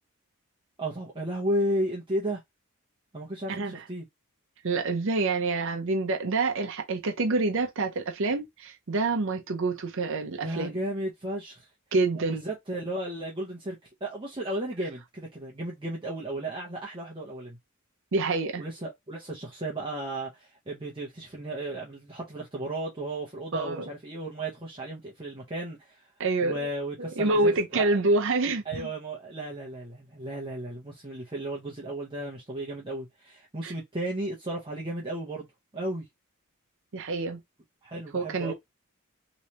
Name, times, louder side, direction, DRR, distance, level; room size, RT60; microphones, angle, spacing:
voice 1, 0.8-2.4 3.1-4.1 10.4-11.7 12.1-13.8 14.0-17.6 18.6-26.1 26.4-27.9 28.7-35.5 35.7-36.0 37.8-38.5, right 1 dB, 25° right, 0.8 m, -34 dB
voice 2, 3.5-3.8 4.6-10.8 11.9-12.4 18.1-18.6 23.5-23.9 26.2-26.5 27.0-28.9 33.6-33.7 36.9-37.4 38.1-38.5, right 3 dB, 60° right, 0.6 m, -27 dB
3.2 x 3.1 x 2.8 m
head